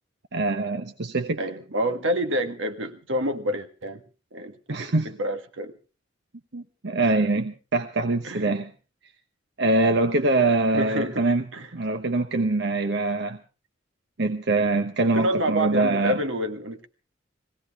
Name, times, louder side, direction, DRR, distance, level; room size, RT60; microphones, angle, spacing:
voice 1, 0.3-1.4 4.7-5.1 6.5-8.7 9.6-11.4 11.7-13.4 14.2-16.2, right 2 dB, 60° right, 1.0 m, -24 dB
voice 2, 1.4-4.0 4.3-5.7 7.0-7.1 8.2-8.5 10.7-11.3 11.5-11.7 15.1-16.9, right 1 dB, 80° right, 1.6 m, -28 dB
21.0 x 17.0 x 3.6 m
head